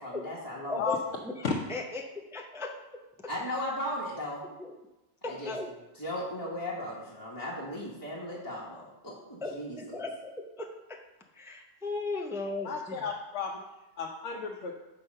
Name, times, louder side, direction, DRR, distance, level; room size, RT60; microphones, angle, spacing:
voice 1, 0.0-0.8 3.3-4.4 5.2-5.5 6.0-10.0, left 1 dB, 20° left, -7 dB, 1.3 m, -37 dB
voice 2, 0.7-2.7 4.6-4.7 5.2-5.7 9.4-11.0 11.3-13.0 14.3-14.4, left 3 dB, 5° right, 2 dB, 0.5 m, -37 dB
voice 3, 12.7-13.6 14.0-14.7, left 5 dB, 80° left, 0 dB, 1.0 m, -33 dB
5.6 x 4.9 x 6.4 m, 1.0 s
omnidirectional pair, 1.1 m